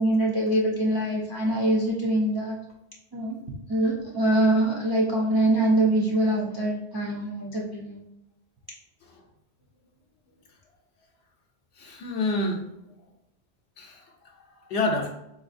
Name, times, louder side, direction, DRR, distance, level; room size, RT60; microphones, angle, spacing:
voice 1, 0.0-2.6 3.1-3.4 3.7-8.0, right 1 dB, 40° right, -3 dB, 0.3 m, -24 dB
voice 2, 11.8-12.7 13.8-15.1, left 2 dB, 80° left, 0 dB, 0.8 m, -29 dB
4.0 x 2.6 x 2.5 m, 0.85 s
omnidirectional pair, 1.1 m